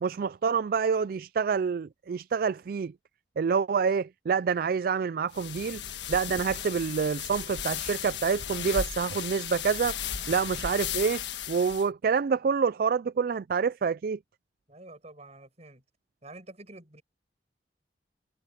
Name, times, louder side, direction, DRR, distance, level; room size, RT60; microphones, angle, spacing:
voice 1, 0.0-2.9 3.4-5.8 6.1-10.0 10.3-11.2 11.5-14.2, right 6 dB, 55° right, 0.3 m, -27 dB
sound 1, 5.3-11.9, left 8 dB, 90° left, 1.5 m, -35 dB
voice 2, 14.7-15.8 16.2-17.0, right 2 dB, 40° right, 7.6 m, -48 dB
head